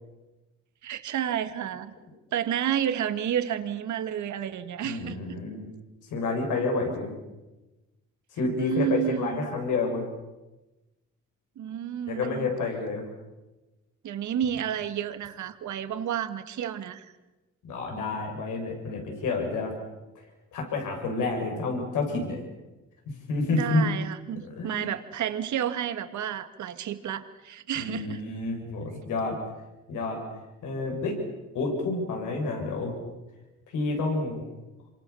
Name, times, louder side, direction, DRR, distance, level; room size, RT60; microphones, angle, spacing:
voice 1, 0.8-1.9 2.3-5.4 8.6-9.5 11.6-12.5 14.0-17.1 23.5-28.2, right 10 dB, 70° right, 10 dB, 2.0 m, -31 dB
voice 2, 4.8-5.7 6.1-7.1 8.3-10.1 12.1-13.0 17.6-19.7 20.5-22.4 23.1-23.9 24.5-24.9 27.8-29.4 29.9-30.2 30.6-31.2 31.5-33.0 33.7-34.4, left 3 dB, 85° left, 2 dB, 7.4 m, -29 dB
27.0 x 24.5 x 7.1 m, 1.1 s
cardioid pair, 90°, 30 cm